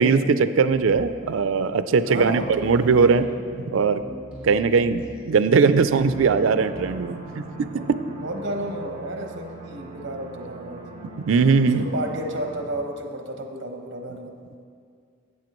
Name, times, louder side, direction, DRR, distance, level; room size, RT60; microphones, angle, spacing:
voice 1, 0.0-3.3 3.7-4.0 4.4-7.4 11.3-11.9, right 5 dB, 85° right, 12 dB, 0.4 m, -20 dB
sound 1, 0.7-1.3 1.6-1.7 2.0-7.3, equal, 5° right, 2.0 m, -41 dB
voice 2, 2.0-2.5 7.5-10.9 11.7-14.4, right 1 dB, 60° right, 4 dB, 1.0 m, -32 dB
was that really you, 6.0-12.6, right 2 dB, 30° right, 1.0 m, -41 dB
12.5 x 8.4 x 3.1 m, 2.2 s
head